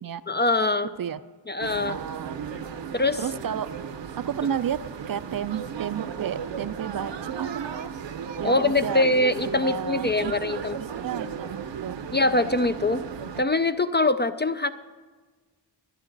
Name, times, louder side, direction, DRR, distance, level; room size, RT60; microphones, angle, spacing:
voice 1, 0.3-0.9 1.5-2.0 2.9-3.2 8.4-10.8 12.1-13.0 13.4-14.7, left 2 dB, 25° left, 10 dB, 0.3 m, -23 dB
sound 1, 1.6-13.4, right 7 dB, 75° right, 0.8 m, -35 dB
voice 2, 1.9-2.4 3.2-3.7 4.2-4.8 5.1-7.9 8.4-9.1 9.4-12.0, right 9 dB, 50° right, 14 dB, 0.5 m, -32 dB
24.5 x 9.1 x 4.0 m, 1.4 s
wide cardioid pair, 140°, 43 cm